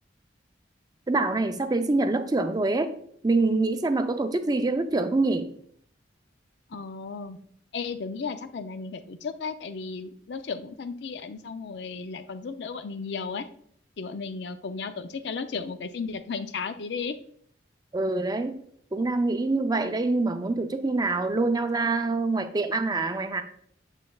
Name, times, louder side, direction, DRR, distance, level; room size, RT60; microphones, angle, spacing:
voice 1, 1.1-2.9 3.2-5.5 17.9-18.6 18.9-23.4, right 3 dB, 20° right, 8 dB, 0.4 m, -25 dB
voice 2, 6.7-7.4 7.7-13.5 14.0-17.2, left 5 dB, 65° left, 10 dB, 0.5 m, -34 dB
7.3 x 6.6 x 2.3 m, 0.64 s
head